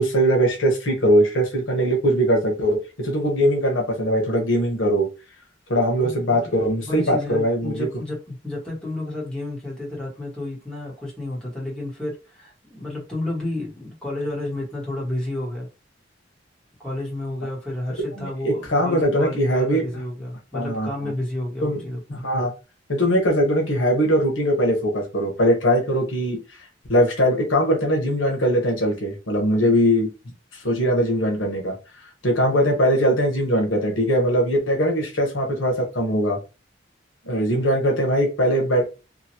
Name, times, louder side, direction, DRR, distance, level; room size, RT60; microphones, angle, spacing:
voice 1, 0.0-5.1 5.7-7.9 18.2-19.8 20.5-21.1 21.6-21.8 22.1-22.5 22.9-26.4 26.9-30.1 30.6-31.7 32.2-36.4 37.3-38.9, equal, 85° left, 1 dB, 1.0 m, -21 dB
voice 2, 6.0-15.7 16.8-22.2, left 1 dB, 5° left, -5 dB, 1.4 m, -31 dB
2.9 x 2.5 x 2.8 m, 0.30 s
head